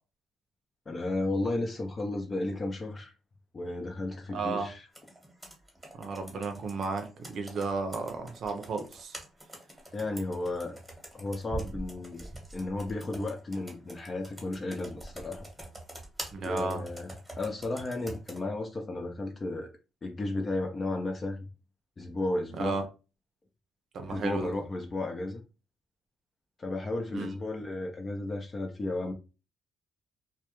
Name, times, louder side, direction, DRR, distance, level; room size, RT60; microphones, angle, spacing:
voice 1, 0.9-3.1 3.5-4.8 9.9-10.8 11.1-12.3 12.5-15.4 16.4-19.7 20.0-21.5 22.0-22.8 24.1-25.4 26.6-29.1, left 2 dB, 35° left, 0.5 m, -33 dB
voice 2, 4.3-4.7 6.0-9.1 16.3-16.8 22.6-22.8 23.9-24.5 27.1-27.3, right 4 dB, 60° right, 0.6 m, -33 dB
Computer keyboard, 4.9-18.4, right 1 dB, 10° right, 1.0 m, -45 dB
2.2 x 2.2 x 2.9 m
cardioid pair, 90°, 0 cm